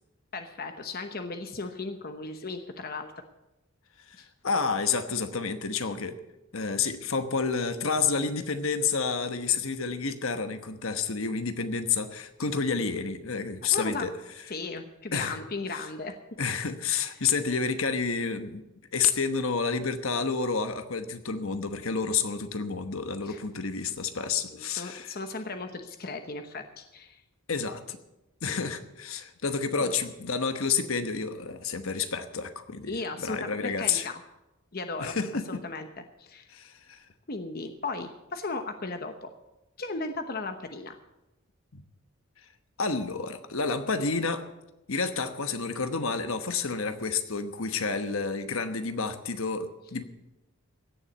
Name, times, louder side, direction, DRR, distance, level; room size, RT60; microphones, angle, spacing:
voice 1, 0.3-3.1 4.2-4.3 13.7-14.1 14.5-16.2 23.2-23.4 24.5-27.2 29.8-29.9 32.9-34.2 34.7-35.1 35.5-36.5 37.3-39.3 39.8-41.0, left 3 dB, 45° left, 7 dB, 1.0 m, -36 dB
voice 2, 4.1-6.2 6.5-14.1 15.1-15.4 15.7-15.8 16.4-18.6 18.9-25.1 27.5-28.0 28.4-34.1 35.0-35.6 36.5-37.0 41.7-41.8 42.8-44.5 44.9-50.0, left 5 dB, 70° left, 9 dB, 1.1 m, -29 dB
16.5 x 7.2 x 8.2 m, 0.95 s
head